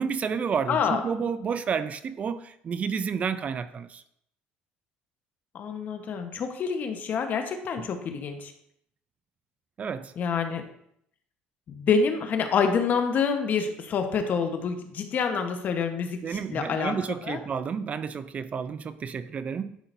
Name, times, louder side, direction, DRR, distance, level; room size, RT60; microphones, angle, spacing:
voice 1, 0.0-4.0 9.8-10.1 16.2-19.8, right 6 dB, 35° right, 13 dB, 0.4 m, -30 dB
voice 2, 0.7-1.0 5.5-8.5 10.2-10.6 11.7-16.9 17.2-17.4, left 6 dB, 50° left, 6 dB, 1.1 m, -27 dB
11.5 x 5.9 x 2.6 m, 0.71 s
cardioid pair, 105°, 4 cm